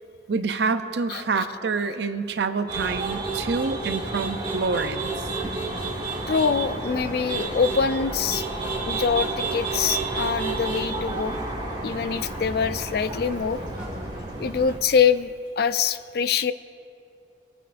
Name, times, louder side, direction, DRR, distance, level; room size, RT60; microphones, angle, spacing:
voice 1, 0.3-5.1, right 4 dB, 65° right, 9 dB, 0.6 m, -27 dB
sound 1, 2.7-4.3 4.7-4.8 4.9-12.0 12.3-14.5 14.9-15.0 15.4-15.5, equal, 5° right, 2.1 m, -45 dB
sound 2, 2.7-14.8, right 3 dB, 25° right, 1.6 m, -30 dB
voice 2, 6.3-8.4 8.8-11.4 11.8-13.6 14.4-16.5, left 6 dB, 55° left, 13 dB, 0.3 m, -24 dB
24.5 x 8.7 x 2.6 m, 2.6 s
head